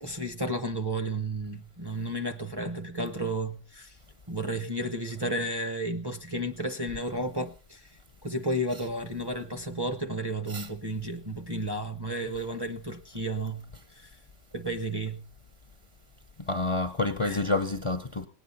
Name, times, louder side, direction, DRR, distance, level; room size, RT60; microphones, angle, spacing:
voice 1, 0.0-3.9 4.3-7.9 8.2-13.7 13.9-14.1 14.5-15.3 17.2-17.4, right 1 dB, 25° right, 0.7 m, -32 dB
voice 2, 16.4-18.3, left 2 dB, 35° left, 0.6 m, -28 dB
19.5 x 9.3 x 4.1 m
omnidirectional pair, 1.3 m